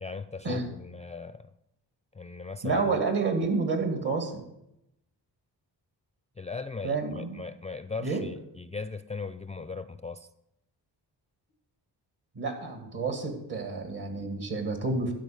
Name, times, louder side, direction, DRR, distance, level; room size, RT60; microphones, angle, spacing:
voice 1, 0.0-1.5 2.1-2.8 6.4-10.3, left 4 dB, 15° left, 12 dB, 0.4 m, -38 dB
voice 2, 2.6-4.4 6.8-7.4 8.0-8.2 12.3-15.1, right 4 dB, 60° right, 5 dB, 2.4 m, -29 dB
12.5 x 4.4 x 7.7 m, 0.86 s
cardioid pair, 50°, 44 cm